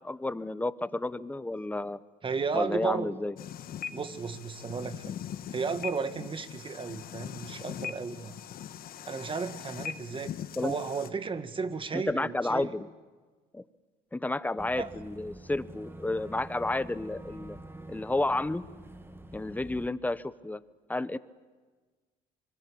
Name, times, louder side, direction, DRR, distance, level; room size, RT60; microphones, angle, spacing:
voice 1, 0.0-2.0 2.5-3.3 10.6-10.7 11.9-12.9 13.5-13.6 14.1-17.6 17.9-18.6 19.3-20.6 20.9-21.2, left 2 dB, 10° left, 16 dB, 0.9 m, -31 dB
voice 2, 2.2-3.1 3.9-5.2 5.5-8.4 9.1-10.3 10.6-12.7 14.8-14.9, right 5 dB, 30° right, 10 dB, 1.9 m, -34 dB
sound 1, 3.4-11.1, left 9 dB, 60° left, 1.4 m, -41 dB
Boat Water vehicle / Engine, 14.6-19.9, right 1 dB, 15° right, 2.1 m, -46 dB
25.0 x 23.5 x 8.6 m, 1.4 s
cardioid pair, 110°, 17 cm